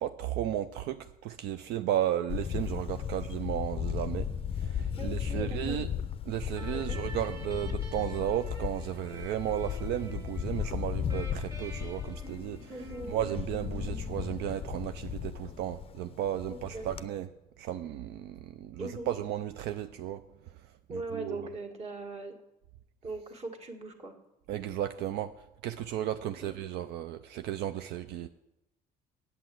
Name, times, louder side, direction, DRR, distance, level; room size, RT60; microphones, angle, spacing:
voice 1, 0.0-4.3 4.6-5.9 6.3-12.7 13.1-17.3 17.6-20.2 20.9-21.4 24.5-25.3 25.6-28.3, right 11 dB, 80° right, 0.5 m, -34 dB
Camera, 2.3-17.1, left 9 dB, 35° left, 0.5 m, -36 dB
voice 2, 5.0-5.8 6.7-7.0 12.7-13.2 13.8-13.9 16.5-16.9 18.8-19.1 20.9-22.4 23.0-24.1 26.4-26.5, right 2 dB, 40° right, 1.8 m, -40 dB
sound 1, 6.5-15.0, right 1 dB, 20° right, 1.5 m, -49 dB
8.4 x 8.0 x 7.6 m
cardioid pair, 110°, 17 cm